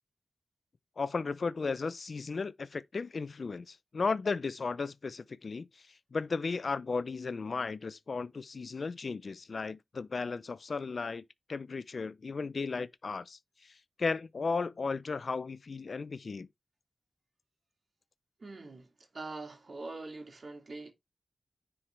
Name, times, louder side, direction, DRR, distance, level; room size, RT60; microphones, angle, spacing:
voice 1, 1.0-5.7 6.1-11.2 11.5-13.7 14.0-16.5, left 4 dB, 60° left, 0.4 m, -35 dB
voice 2, 18.4-20.9, right 3 dB, 55° right, 2.4 m, -44 dB
9.8 x 4.5 x 3.3 m
wide cardioid pair, 75°, 0 cm